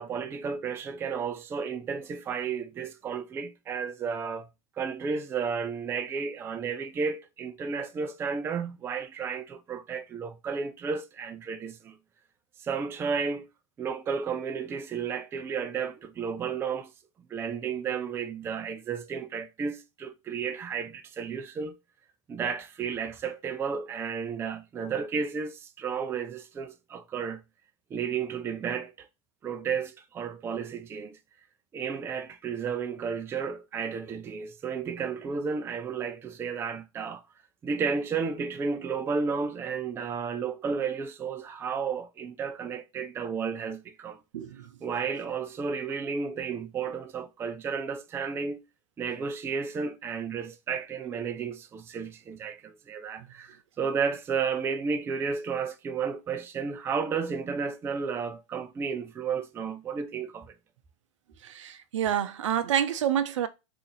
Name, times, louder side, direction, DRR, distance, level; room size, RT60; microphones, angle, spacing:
voice 1, 0.0-4.5 4.8-11.9 12.6-13.5 13.8-16.9 17.3-21.7 22.3-27.4 27.9-29.1 29.4-31.2 31.7-37.2 37.6-44.2 44.8-48.6 49.0-60.5, right 6 dB, 15° right, 0.3 m, -32 dB
voice 2, 44.3-44.7 61.4-63.5, right 9 dB, 75° right, 0.5 m, -28 dB
2.8 x 2.5 x 3.9 m
hypercardioid pair, 105°, 16 cm